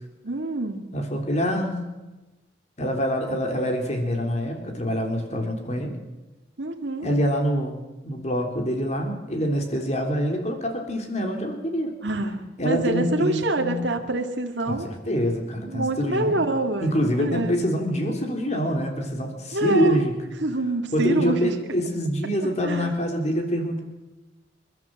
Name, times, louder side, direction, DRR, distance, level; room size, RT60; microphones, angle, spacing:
voice 1, 0.2-0.9 6.6-7.1 12.0-14.9 15.7-17.5 19.5-20.0 20.4-21.4 22.4-22.9, right 2 dB, 65° right, 2 dB, 2.0 m, -26 dB
voice 2, 0.9-1.9 2.8-6.0 7.0-11.9 12.6-13.8 14.7-16.4 16.8-20.1 20.9-23.8, equal, 35° left, 3 dB, 3.6 m, -25 dB
29.0 x 12.0 x 7.7 m, 1.1 s
head